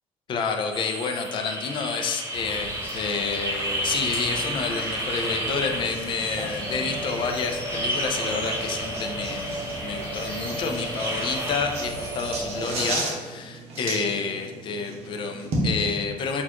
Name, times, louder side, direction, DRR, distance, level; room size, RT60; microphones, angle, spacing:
voice 1, 0.3-16.4, left 5 dB, 40° left, 4 dB, 0.4 m, -29 dB
sound 1, 0.7-12.4, right 1 dB, 25° right, 0.5 m, -32 dB
sound 2, 2.3-13.0, equal, 15° left, 0.9 m, -39 dB
sound 3, 4.1-15.7, right 2 dB, 55° right, 0.9 m, -34 dB
4.0 x 2.4 x 2.9 m, 1.3 s
cardioid pair, 150°, 12 cm